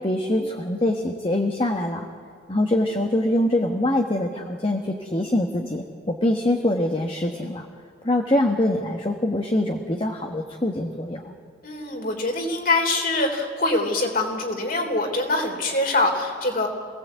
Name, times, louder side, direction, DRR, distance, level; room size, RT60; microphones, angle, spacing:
voice 1, 0.0-2.1 2.5-7.7 8.0-11.3, left 1 dB, 30° left, 2 dB, 1.3 m, -24 dB
voice 2, 11.6-16.7, left 2 dB, 55° left, 3 dB, 3.6 m, -24 dB
26.5 x 17.5 x 8.2 m, 2.2 s
head